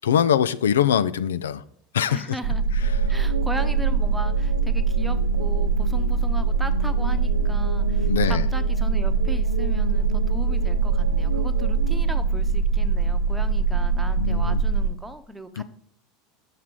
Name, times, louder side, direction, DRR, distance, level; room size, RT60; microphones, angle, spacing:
voice 1, 0.0-1.6 1.9-2.2 8.1-8.4 14.2-14.6 15.6-15.7, left 9 dB, 75° left, 0.3 m, -22 dB
voice 2, 2.1-2.6 3.1-15.6, right 1 dB, 10° right, 0.9 m, -37 dB
sound 1, 2.4-14.9, right 5 dB, 70° right, 1.0 m, -22 dB
sound 2, 2.8-12.2, right 3 dB, 85° right, 0.4 m, -35 dB
7.4 x 5.9 x 4.7 m
hypercardioid pair, 80°, 0 cm